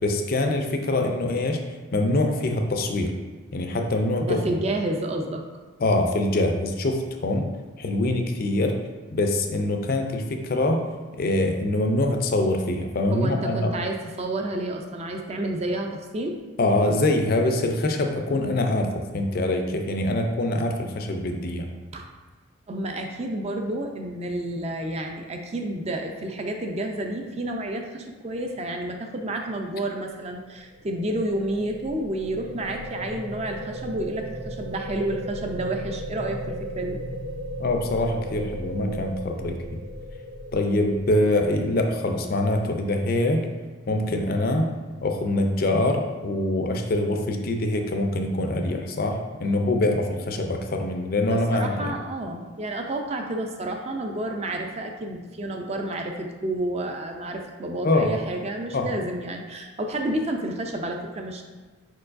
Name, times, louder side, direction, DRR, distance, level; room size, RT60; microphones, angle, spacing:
voice 1, 0.0-1.6 1.9-3.1 3.5-4.4 5.8-7.5 7.8-8.8 9.1-10.8 11.1-13.7 16.6-21.7 37.6-39.8 40.5-43.5 43.9-44.7 45.0-51.9 57.8-58.1 58.7-58.9, left 1 dB, 45° left, 4 dB, 0.4 m, -24 dB
voice 2, 4.2-5.4 13.1-16.4 21.9-22.1 22.7-37.0 51.3-61.4, right 1 dB, 30° right, 3 dB, 0.4 m, -30 dB
sound 1, 30.5-42.6, equal, 85° right, 0.7 m, -36 dB
4.6 x 4.5 x 2.5 m, 1.4 s
head